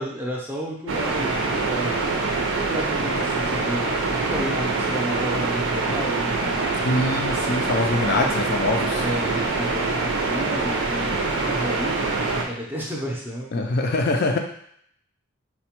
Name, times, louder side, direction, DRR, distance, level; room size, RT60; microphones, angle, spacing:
voice 1, 0.0-2.0 2.6-6.7 7.9-8.4 9.0-13.5, equal, 10° right, -3 dB, 0.5 m, -32 dB
sound 1, 0.9-12.4, right 3 dB, 60° right, 0.5 m, -24 dB
voice 2, 6.8-9.0 13.5-14.4, left 2 dB, 50° left, 2 dB, 0.3 m, -24 dB
4.1 x 2.2 x 2.9 m, 0.67 s
head